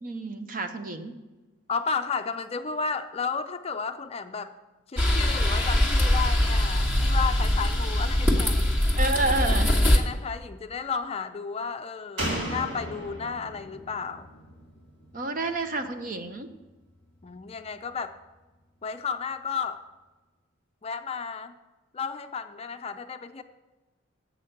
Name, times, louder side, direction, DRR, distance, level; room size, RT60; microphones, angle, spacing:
voice 1, 0.0-1.1 9.0-9.7 15.1-16.5, right 2 dB, 45° right, 7 dB, 0.8 m, -29 dB
voice 2, 1.7-4.5 4.9-8.6 9.9-14.3 17.2-18.2 18.8-19.8 20.8-21.5 21.9-23.4, left 5 dB, 30° left, 8 dB, 0.4 m, -33 dB
sound 1, 5.0-10.0, left 1 dB, 10° right, 1.3 m, -22 dB
Slam, 12.2-15.7 16.0-16.1, right 1 dB, 80° right, 3.3 m, -35 dB
8.2 x 6.0 x 7.8 m, 1.2 s
head